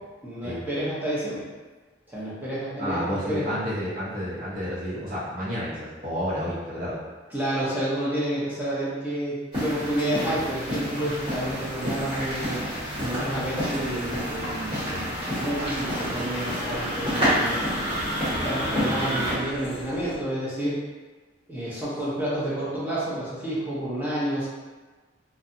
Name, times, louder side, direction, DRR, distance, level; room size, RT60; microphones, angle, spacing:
voice 1, 0.2-1.4 2.1-3.4 7.3-12.7 13.0-17.7 18.4-20.8 21.5-24.5, right 1 dB, 10° right, -9 dB, 0.6 m, -30 dB
voice 2, 2.8-7.0 18.8-19.1, equal, 45° right, -9 dB, 0.8 m, -30 dB
sound 1, 9.5-19.3, equal, 25° right, 1.1 m, -28 dB
sound 2, 11.0-20.2, left 1 dB, 60° left, 0.5 m, -42 dB
2.6 x 2.2 x 2.6 m, 1.3 s
head